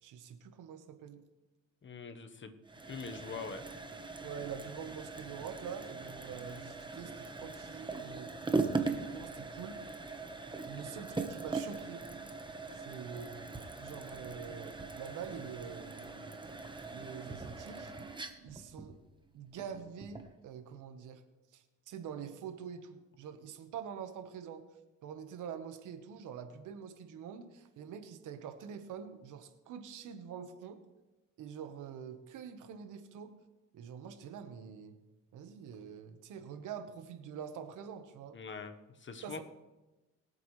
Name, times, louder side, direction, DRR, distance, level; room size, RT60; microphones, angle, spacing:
voice 1, 0.0-1.2 4.2-9.8 10.6-12.1 12.7-17.9 18.4-19.0 19.3-21.2 21.5-24.6 25.0-30.8 31.4-33.3 33.7-34.9 35.3-38.4 39.2-39.4, right 7 dB, 85° right, 8 dB, 1.3 m, -46 dB
voice 2, 1.8-2.5 2.8-3.6 38.3-39.4, left 5 dB, 40° left, 7 dB, 1.3 m, -43 dB
sound 1, 2.6-20.4, right 3 dB, 15° right, 1.2 m, -40 dB
22.5 x 8.1 x 3.3 m, 1.1 s
cardioid pair, 90°, 30 cm